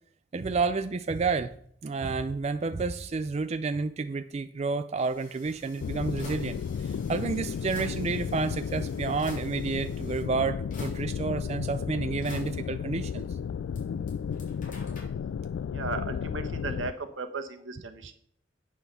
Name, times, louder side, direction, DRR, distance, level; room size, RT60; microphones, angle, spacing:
voice 1, 0.3-1.5 1.8-13.3, right 4 dB, 35° right, 10 dB, 0.4 m, -30 dB
sound 1, 5.0-10.2 10.7-11.5 12.2-13.8 14.1-15.0, left 1 dB, 45° left, 3.5 m, -50 dB
sound 2, 5.8-16.9, left 7 dB, 80° left, 0.3 m, -33 dB
voice 2, 15.7-18.1, right 3 dB, 80° right, 7 dB, 1.3 m, -36 dB
9.0 x 6.0 x 6.9 m, 0.64 s
head